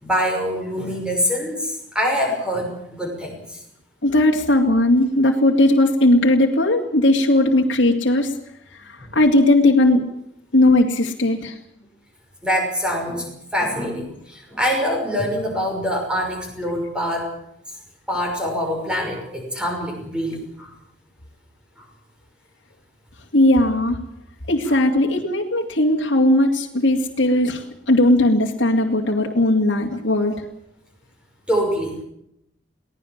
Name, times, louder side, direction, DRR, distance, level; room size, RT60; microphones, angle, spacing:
voice 1, 0.0-3.6 12.4-13.3 13.5-17.3 18.1-20.7 24.7-24.8 31.5-32.0, equal, 5° right, 1 dB, 5.9 m, -24 dB
voice 2, 4.0-8.3 9.1-10.0 10.5-11.5 23.3-24.0 24.5-30.3, left 1 dB, 75° left, 0 dB, 2.5 m, -17 dB
23.5 x 17.5 x 7.4 m, 0.76 s
head